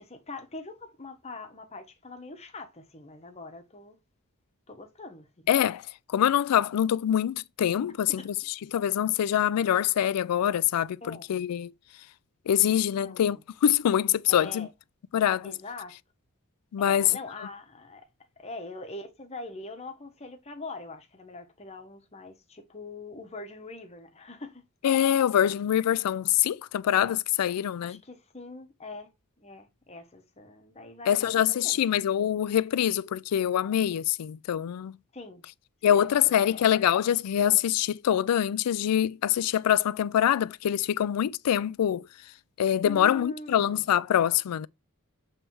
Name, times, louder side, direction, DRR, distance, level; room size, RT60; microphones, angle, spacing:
voice 1, 0.0-4.0 4.7-5.3 8.2-8.3 11.0-11.2 12.9-13.4 14.3-14.7 15.4-15.9 16.8-18.0 18.4-24.6 27.8-29.1 29.4-31.9 35.1-35.4 35.9-36.6 42.8-43.9, left 2 dB, 30° left, 1.1 m, -43 dB
voice 2, 5.5-5.8 6.1-11.7 12.5-14.7 15.1-15.5 16.7-17.1 24.8-28.0 31.1-34.9 35.8-42.0 42.6-44.7, left 10 dB, 90° left, 0.3 m, -24 dB
7.4 x 3.3 x 4.6 m
head